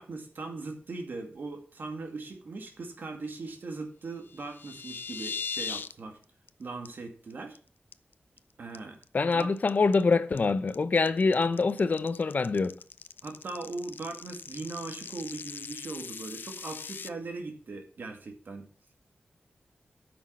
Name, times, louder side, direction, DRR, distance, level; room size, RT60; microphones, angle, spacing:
voice 1, 0.0-6.2 6.6-7.6 8.6-9.0 9.3-9.5 13.2-18.6, right 3 dB, 70° right, 2.2 m, -39 dB
sound 1, 4.3-5.9 6.2-6.5 6.8-6.9 7.3-7.6 7.9-8.4 8.7-17.1, left 6 dB, 85° left, 0.5 m, -40 dB
voice 2, 9.1-12.8, left 4 dB, 55° left, 0.8 m, -25 dB
9.7 x 6.2 x 6.2 m
wide cardioid pair, 115°, 3 cm